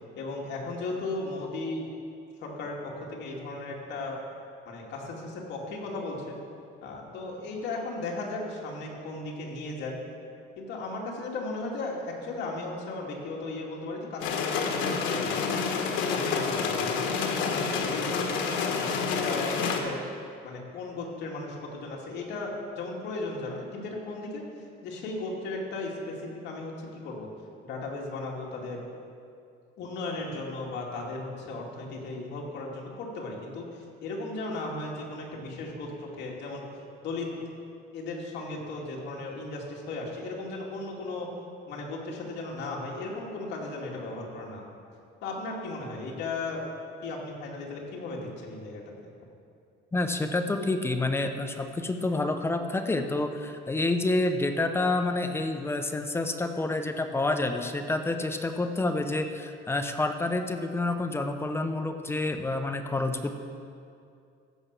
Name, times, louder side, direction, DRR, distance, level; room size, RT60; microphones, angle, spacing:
voice 1, 0.2-1.9 2.4-4.2 4.6-6.4 6.8-10.0 10.6-15.4 16.0-18.3 18.7-20.0 20.4-24.4 24.8-26.7 27.0-27.3 27.6-28.8 29.8-33.7 34.0-36.6 37.0-37.3 37.9-41.3 41.7-44.7 45.2-46.7 47.0-48.8, left 2 dB, 70° left, -2 dB, 2.4 m, -36 dB
sound 1, 14.2-19.8, left 5 dB, 90° left, 1.4 m, -28 dB
voice 2, 49.9-63.3, left 2 dB, 15° left, 6 dB, 0.6 m, -28 dB
15.0 x 6.2 x 6.7 m, 2.4 s
cardioid pair, 160°, 19 cm